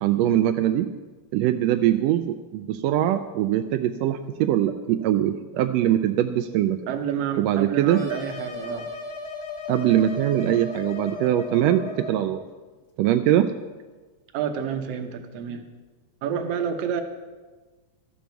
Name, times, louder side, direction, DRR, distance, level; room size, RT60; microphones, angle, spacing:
voice 1, 0.0-0.9 1.3-6.8 7.4-8.0 9.7-12.4 13.0-13.5, right 12 dB, 80° right, 8 dB, 1.5 m, -22 dB
voice 2, 6.9-8.9 14.3-15.6 16.2-17.0, right 8 dB, 65° right, 6 dB, 1.9 m, -29 dB
sound 1, 7.9-12.4, left 3 dB, 35° left, 0.6 m, -35 dB
13.5 x 12.5 x 4.6 m, 1.3 s
omnidirectional pair, 3.4 m